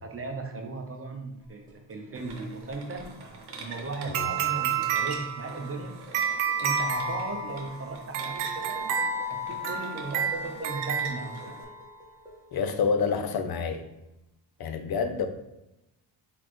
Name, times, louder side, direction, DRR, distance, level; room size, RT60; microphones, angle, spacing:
voice 1, 0.0-5.9 6.6-8.9 9.2-11.6, right 3 dB, 30° right, 3 dB, 0.8 m, -37 dB
sound 1, 1.4-3.3 3.6-5.2 5.5-13.2 13.7-13.9, right 1 dB, 10° right, 1.4 m, -47 dB
sound 2, 2.1-11.6, right 4 dB, 55° right, 1.1 m, -44 dB
sound 3, 4.1-11.8, right 6 dB, 80° right, 0.7 m, -30 dB
voice 2, 12.5-13.8 14.6-15.3, left 5 dB, 50° left, 7 dB, 0.7 m, -28 dB
4.1 x 3.8 x 3.1 m, 0.92 s
cardioid pair, 90°, 49 cm